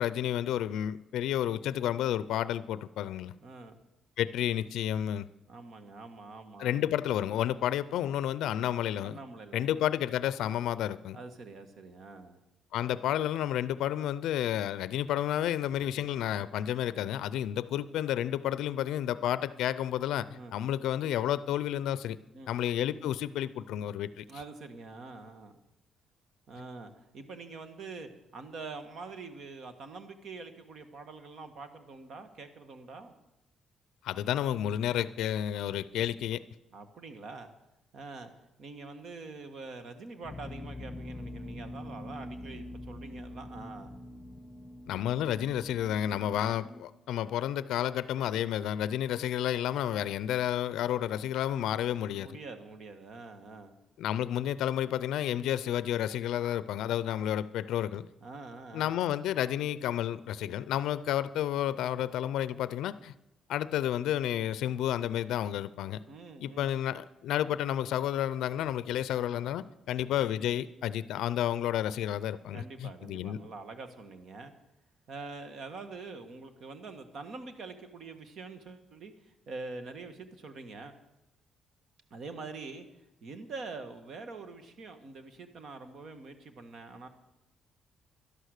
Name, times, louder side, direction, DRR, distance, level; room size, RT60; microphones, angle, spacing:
voice 1, 0.0-3.3 4.2-5.3 6.6-9.2 9.5-11.2 12.7-22.2 22.5-24.2 34.0-36.4 44.9-52.3 54.0-58.1 58.7-63.1 63.5-66.0 66.4-73.4, left 11 dB, 85° left, 16 dB, 0.4 m, -31 dB
voice 2, 3.3-3.8 5.5-6.9 9.0-9.7 11.1-12.4 20.3-20.5 22.3-22.5 24.3-25.5 26.5-33.1 36.7-37.5 37.9-38.3 38.6-43.9 52.2-53.7 58.2-58.9 66.1-66.7 72.5-74.5 75.1-80.9 82.1-82.9 83.2-87.1, right 3 dB, 65° right, 8 dB, 1.5 m, -45 dB
sound 1, 40.2-46.8, left 1 dB, 20° left, 1.0 m, -44 dB
12.0 x 11.5 x 6.5 m, 0.93 s
cardioid pair, 90°, 0 cm